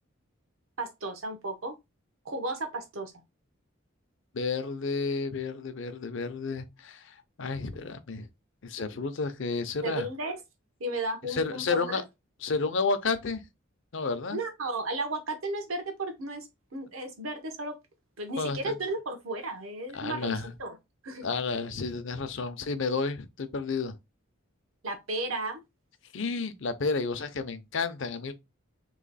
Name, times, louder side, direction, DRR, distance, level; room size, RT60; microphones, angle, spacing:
voice 1, 0.8-1.7 2.2-3.1 9.8-10.4 10.8-12.0 14.3-17.8 18.2-20.8 21.0-21.3 24.8-25.6, right 2 dB, 85° right, 1.0 m, -34 dB
voice 2, 4.3-8.3 8.6-10.1 11.3-12.0 12.4-13.4 13.9-14.4 18.4-18.7 19.9-20.5 21.2-24.0 26.1-28.3, left 4 dB, 60° left, 0.6 m, -31 dB
3.1 x 3.0 x 4.0 m
head